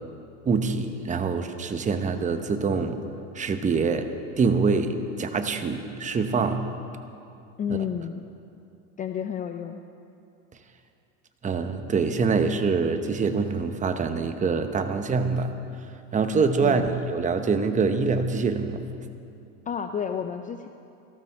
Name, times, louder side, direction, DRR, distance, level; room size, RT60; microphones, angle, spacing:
voice 1, 0.4-3.0 3.3-4.1 4.4-6.7 7.7-7.8 11.4-15.5 16.1-18.8, right 4 dB, 20° right, 7 dB, 0.9 m, -25 dB
voice 2, 7.6-8.2 9.0-9.8 16.6-16.9 19.7-20.7, left 8 dB, 20° left, 7 dB, 0.5 m, -31 dB
18.5 x 15.5 x 4.5 m, 2.6 s
supercardioid pair, 125°, 38 cm